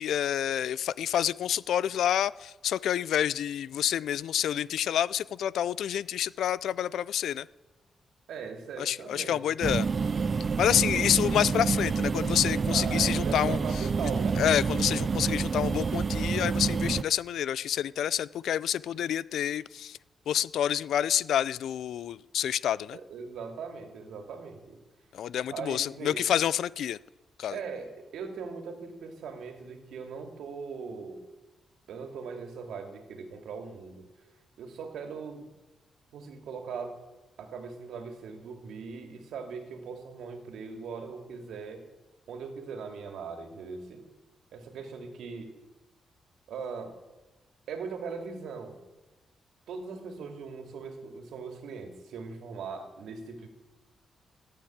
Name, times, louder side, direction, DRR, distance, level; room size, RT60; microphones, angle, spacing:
voice 1, 0.0-7.5 8.8-9.9 10.6-14.1 14.4-20.0 20.3-23.0 25.1-27.0 27.4-27.6, left 10 dB, 85° left, 21 dB, 0.4 m, -28 dB
voice 2, 8.3-9.5 10.6-11.1 12.7-14.4 22.9-24.8 25.5-26.2 27.5-31.2 31.9-34.0 34.6-35.5 36.1-37.0 37.4-41.9 42.3-44.0 44.5-45.5 46.5-46.9 47.7-48.8 49.7-53.5, right 5 dB, 85° right, 5 dB, 2.4 m, -40 dB
sound 1, 9.6-17.0, right 5 dB, 35° right, 0.4 m, -28 dB
15.0 x 8.7 x 8.7 m, 1.1 s
cardioid pair, 135°, 0 cm